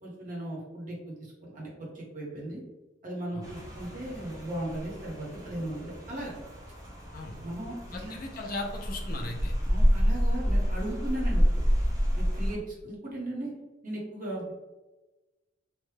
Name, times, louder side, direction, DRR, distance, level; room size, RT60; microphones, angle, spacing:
voice 1, 0.0-2.6 3.0-6.3 7.4-8.2 9.7-11.6 12.1-13.5 13.8-14.5, right 1 dB, 45° right, -4 dB, 1.0 m, -37 dB
Rain, 3.4-12.5, equal, 20° right, 0.7 m, -29 dB
voice 2, 7.9-9.5, left 2 dB, 50° left, 1 dB, 0.6 m, -37 dB
3.1 x 2.2 x 3.2 m, 1.1 s
head